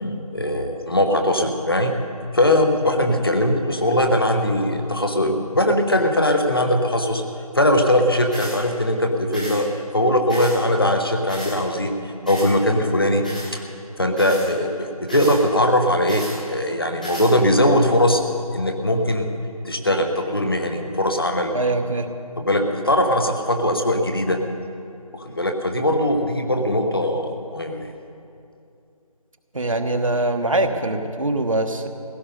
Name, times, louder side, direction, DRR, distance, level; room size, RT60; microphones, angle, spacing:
voice 1, 0.0-1.9 2.3-7.2 7.5-9.7 9.9-13.3 14.0-18.2 18.5-19.3 19.6-21.5 22.4-24.4 25.1-27.9, left 1 dB, 40° left, 5 dB, 1.2 m, -20 dB
sound 1, 8.3-8.6 9.3-9.6 10.3-10.6 11.3-11.6 12.3-12.5 13.2-13.5 14.2-14.5 15.1-15.4 16.1-16.4 17.0-17.3, equal, 10° left, 1.2 m, -34 dB
voice 2, 21.5-22.1 29.5-31.9, right 2 dB, 60° right, 5 dB, 1.2 m, -22 dB
16.5 x 15.0 x 5.3 m, 2.6 s
figure-of-eight pair, 180°, 19 cm